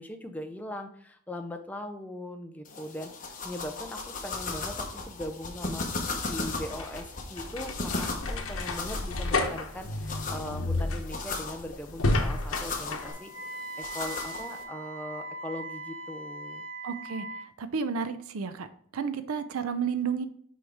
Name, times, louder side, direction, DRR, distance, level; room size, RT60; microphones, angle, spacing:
voice 1, 0.0-5.9 6.3-16.7, left 1 dB, 5° left, 5 dB, 0.5 m, -40 dB
sound 1, 2.7-14.6, left 3 dB, 35° left, 1.1 m, -37 dB
sound 2, 6.7-13.1, left 2 dB, 75° left, 1.0 m, -31 dB
Wind instrument woodwind instrument, 12.9-17.5, right 2 dB, 60° right, 1.2 m, -40 dB
voice 2, 16.8-17.3 17.6-18.7 18.9-20.3, right 6 dB, 80° right, 11 dB, 0.5 m, -31 dB
6.3 x 4.7 x 3.5 m, 0.63 s
head